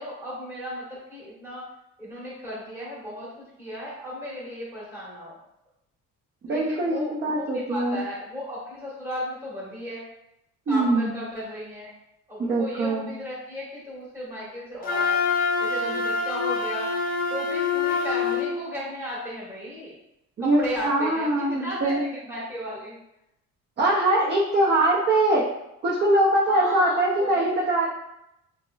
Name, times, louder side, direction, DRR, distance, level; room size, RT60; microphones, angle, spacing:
voice 1, 0.0-1.7 2.0-5.4 6.5-10.1 10.7-11.9 12.3-15.2 15.6-16.9 17.3-19.9 20.4-23.0 26.5-27.8, equal, 10° right, -7 dB, 1.4 m, -35 dB
voice 2, 6.5-8.0 10.7-11.1 12.5-13.1 20.4-22.0 23.8-25.4 25.8-27.8, right 1 dB, 30° right, -5 dB, 0.5 m, -22 dB
Wind instrument woodwind instrument, 14.8-18.5, left 5 dB, 30° left, 0.4 m, -25 dB
4.6 x 2.1 x 2.2 m, 0.83 s
cardioid pair, 135°, 34 cm